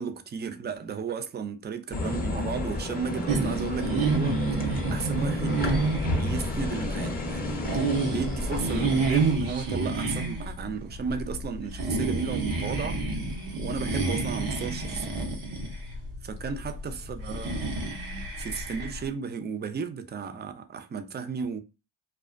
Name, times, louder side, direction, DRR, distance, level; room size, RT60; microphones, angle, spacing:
voice 1, 0.0-5.7 6.1-7.8 8.1-13.0 13.6-15.2 16.2-17.7 18.4-21.6, right 5 dB, 25° right, 0.3 m, -34 dB
sound 1, 1.9-9.3, left 2 dB, 20° left, 0.6 m, -32 dB
sound 2, 3.3-19.1, right 3 dB, 85° right, 0.7 m, -29 dB
2.4 x 2.2 x 2.3 m
supercardioid pair, 50°, 49 cm